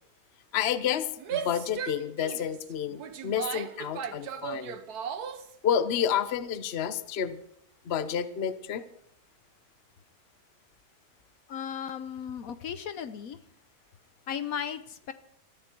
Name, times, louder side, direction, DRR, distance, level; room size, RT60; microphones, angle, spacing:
voice 1, 0.5-4.8 5.6-7.4 7.8-8.8, left 9 dB, 50° left, 13 dB, 1.0 m, -30 dB
Female speech woman speaking / Yell, 1.2-5.5, right 8 dB, 75° right, 1.5 m, -36 dB
voice 2, 11.5-13.4 14.3-15.1, left 8 dB, 65° left, 12 dB, 1.2 m, -36 dB
21.5 x 14.0 x 4.6 m, 0.71 s
omnidirectional pair, 1.6 m